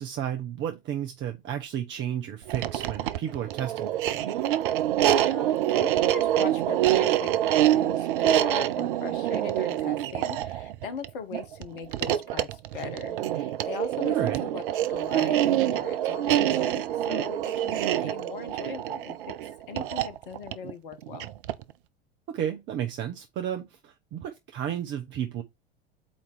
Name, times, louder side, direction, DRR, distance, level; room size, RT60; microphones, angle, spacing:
voice 1, 0.0-4.3 14.1-14.4 22.3-25.4, right 10 dB, 40° right, 1.0 m, -33 dB
sound 1, 2.4-21.7, right 12 dB, 60° right, 0.6 m, -26 dB
voice 2, 5.2-19.4 19.7-21.3, left 6 dB, 60° left, 1.3 m, -40 dB
8.5 x 2.9 x 4.6 m
figure-of-eight pair, 75°, 29 cm